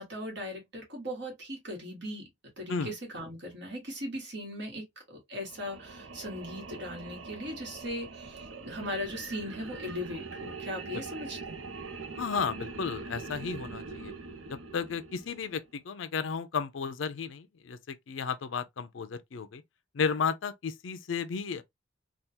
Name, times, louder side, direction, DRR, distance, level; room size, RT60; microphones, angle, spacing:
voice 1, 0.0-2.2 2.6-11.6, left 1 dB, 65° right, 1.7 m, -39 dB
sound 1, 5.4-15.7, right 4 dB, 90° right, 0.7 m, -43 dB
voice 2, 12.2-14.1 14.5-19.6 19.9-21.6, left 6 dB, 80° left, 0.5 m, -33 dB
3.5 x 2.4 x 2.8 m
head